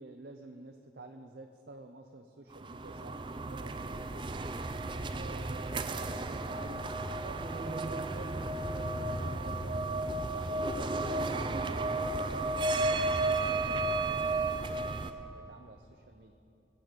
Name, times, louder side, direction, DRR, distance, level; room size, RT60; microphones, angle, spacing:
voice 1, 0.0-4.4 5.0-16.3, right 2 dB, 75° right, 4 dB, 0.7 m, -50 dB
sound 1, 2.5-15.1, right 2 dB, 30° right, 0.4 m, -33 dB
21.5 x 7.6 x 5.2 m, 2.7 s
head